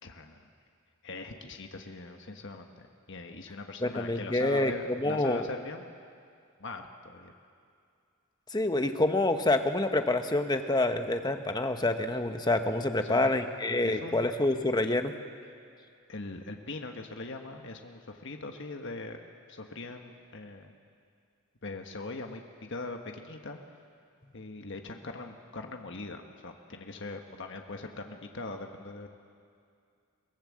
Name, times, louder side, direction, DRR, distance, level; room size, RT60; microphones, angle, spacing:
voice 1, 0.0-0.5 1.0-5.9 6.6-7.3 13.0-13.3 13.8-14.4 16.1-19.2 19.5-20.7 21.6-23.6 24.3-29.1, left 3 dB, 55° left, 4 dB, 1.3 m, -41 dB
voice 2, 3.8-5.5 8.5-15.1, left 2 dB, 20° left, 7 dB, 1.0 m, -27 dB
23.0 x 18.0 x 7.5 m, 2.3 s
head